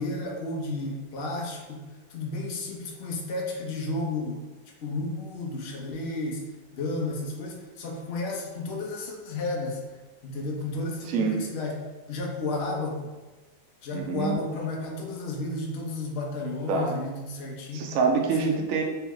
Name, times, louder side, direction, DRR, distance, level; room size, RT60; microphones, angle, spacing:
voice 1, 0.0-1.8 2.1-4.5 4.8-6.4 6.7-9.8 10.2-11.8 12.1-13.1 13.8-17.9 18.4-18.6, left 2 dB, 80° left, -1 dB, 0.5 m, -32 dB
voice 2, 11.1-11.4 13.9-14.3 16.7-16.9 17.7-18.8, right 4 dB, 80° right, 2 dB, 0.7 m, -26 dB
3.4 x 3.1 x 3.5 m, 1.2 s
omnidirectional pair, 2.0 m